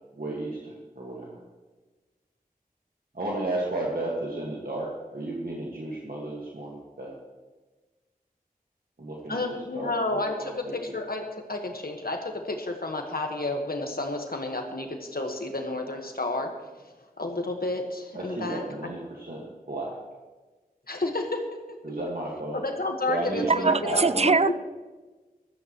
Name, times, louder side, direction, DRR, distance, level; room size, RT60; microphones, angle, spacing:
voice 1, 0.2-1.4 3.1-7.1 9.0-9.4 9.7-10.7 18.1-19.4 19.7-19.9 21.8-22.6 23.1-24.3, right 1 dB, 75° right, 1.8 m, -33 dB
voice 2, 9.3-16.5 17.2-18.6 20.9-21.4 21.7-21.8 22.5-24.5, left 2 dB, 80° left, 1.5 m, -31 dB
voice 3, 23.5-24.5, right 4 dB, 45° right, 0.4 m, -22 dB
16.0 x 13.0 x 3.1 m
wide cardioid pair, 40°, 15 cm